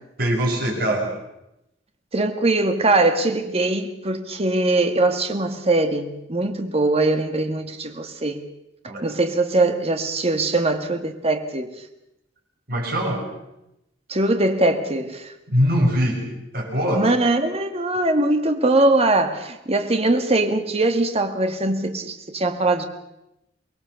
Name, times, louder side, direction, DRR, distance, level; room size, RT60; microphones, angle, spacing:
voice 1, 0.2-1.0 8.9-9.1 12.7-13.3 15.5-16.2 16.5-17.1, equal, 55° right, 6.3 m, -22 dB
voice 2, 2.1-8.4 9.0-11.7 14.1-15.3 16.9-22.8, right 2 dB, 35° right, 1.7 m, -21 dB
24.0 x 20.5 x 6.9 m
head